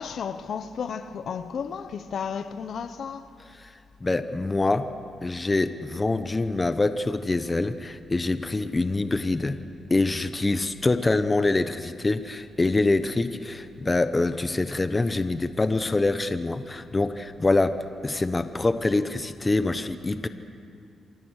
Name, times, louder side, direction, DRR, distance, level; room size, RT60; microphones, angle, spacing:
voice 1, 0.0-3.3, left 6 dB, 60° left, 1.1 m, -33 dB
voice 2, 4.0-4.9 5.2-9.6 9.9-17.8 18.0-20.3, left 2 dB, 20° left, 1.0 m, -25 dB
28.0 x 24.5 x 6.5 m
cardioid pair, 120°, 0 cm